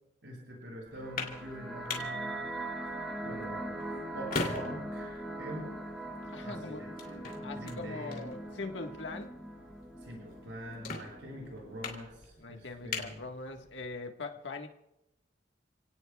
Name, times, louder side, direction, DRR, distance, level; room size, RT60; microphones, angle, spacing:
voice 1, 0.2-2.6 3.2-3.7 4.1-5.8 6.4-8.4 10.0-13.2, right 1 dB, 85° right, -3 dB, 7.9 m, -44 dB
sound 1, 0.9-13.9, left 3 dB, 55° left, 2.9 m, -43 dB
sound 2, 0.9-11.9, right 1 dB, ahead, 1.5 m, -42 dB
sound 3, 2.0-8.9, right 5 dB, 70° right, 1.3 m, -47 dB
voice 2, 6.3-6.9 7.4-9.3 12.4-14.7, left 3 dB, 80° left, 4 dB, 1.5 m, -41 dB
30.0 x 18.0 x 2.3 m, 0.90 s
head